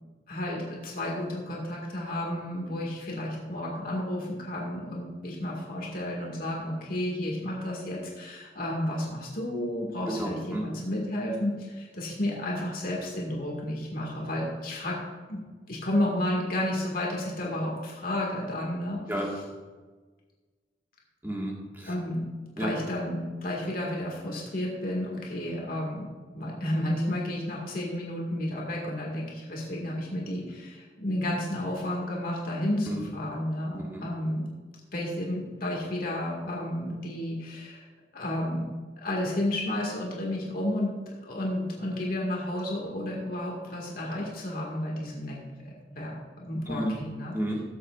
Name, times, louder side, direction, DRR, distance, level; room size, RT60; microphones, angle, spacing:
voice 1, 0.3-15.0 15.3-19.0 21.9-22.3 22.6-26.1 26.3-34.4 34.9-37.9 38.1-38.7 39.0-45.4 45.6-47.3, left 1 dB, 55° left, -3 dB, 2.0 m, -32 dB
voice 2, 10.1-10.6 19.1-19.3 21.2-21.9 22.6-22.7 32.9-33.0 33.7-34.1 46.7-46.9 47.3-47.6, equal, 10° right, -1 dB, 1.7 m, -32 dB
16.5 x 8.0 x 2.5 m, 1.4 s
head